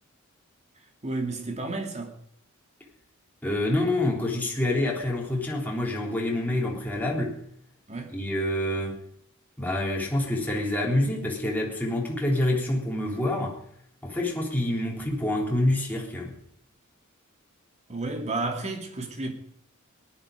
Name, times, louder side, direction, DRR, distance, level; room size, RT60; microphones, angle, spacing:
voice 1, 0.8-2.2 7.9-8.2 17.9-19.3, right 2 dB, 30° right, 2.6 m, -32 dB
voice 2, 3.4-7.4 8.1-9.0 9.6-13.6 14.0-16.4, left 1 dB, 10° left, 3.7 m, -27 dB
18.0 x 12.0 x 5.1 m
head